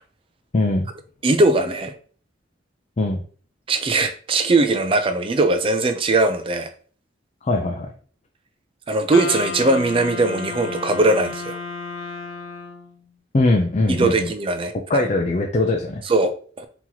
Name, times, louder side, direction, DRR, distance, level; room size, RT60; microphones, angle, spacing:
voice 1, 0.5-0.9 3.0-3.2 7.4-7.9 13.3-14.3 14.9-16.0, left 2 dB, 35° left, 0.4 m, -21 dB
voice 2, 1.2-1.9 3.7-6.7 8.9-11.6 13.9-14.7 16.1-16.7, right 2 dB, 30° right, 0.4 m, -20 dB
Wind instrument woodwind instrument, 9.1-13.0, left 4 dB, 90° left, 0.7 m, -32 dB
2.9 x 2.9 x 3.8 m
head